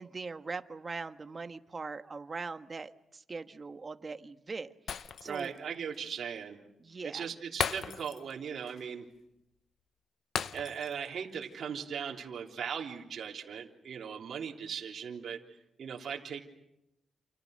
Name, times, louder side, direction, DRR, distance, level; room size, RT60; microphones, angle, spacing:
voice 1, 0.0-4.7 5.2-5.5 6.8-7.3, right 4 dB, 30° right, 8 dB, 1.4 m, -41 dB
Shatter, 4.9-5.6 5.9-6.1 7.6-8.4 8.7-8.8 10.4-11.1 11.4-11.6, left 7 dB, 65° left, 0.9 m, -36 dB
voice 2, 5.2-6.6 7.0-9.0 10.5-16.4, right 7 dB, 60° right, -2 dB, 3.5 m, -39 dB
28.5 x 28.5 x 6.6 m, 0.88 s
cardioid pair, 120°, 0 cm